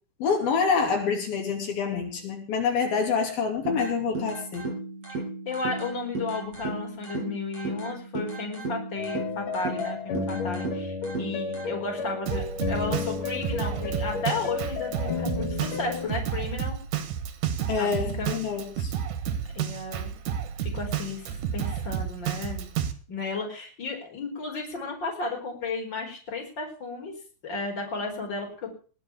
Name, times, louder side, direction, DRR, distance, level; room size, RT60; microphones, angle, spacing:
voice 1, 0.2-4.7 17.7-18.9, left 5 dB, 80° left, 2 dB, 4.8 m, -27 dB
sound 1, 3.7-11.7, right 2 dB, 40° right, 9.2 m, -35 dB
voice 2, 5.1-16.8 17.8-18.3 19.5-20.1 20.6-22.7 23.1-27.1 27.4-28.7, left 3 dB, 30° left, 1 dB, 4.9 m, -34 dB
sound 2, 9.0-16.1, left 5 dB, 60° left, 4.1 m, -33 dB
Drum kit, 12.3-22.9, right 9 dB, 65° right, 3.0 m, -31 dB
20.0 x 7.7 x 7.1 m, 0.40 s
omnidirectional pair, 4.2 m